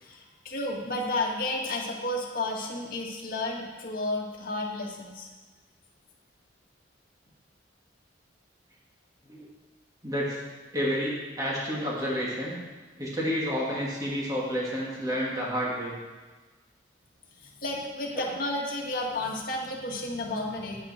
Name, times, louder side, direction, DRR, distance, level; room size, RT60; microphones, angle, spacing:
voice 1, 0.0-5.3 17.4-20.8, left 2 dB, 50° left, -2 dB, 2.0 m, -32 dB
voice 2, 10.0-10.4 10.7-12.6 13.0-16.0, equal, 20° right, -5 dB, 2.4 m, -30 dB
10.5 x 9.4 x 4.5 m, 1.3 s
head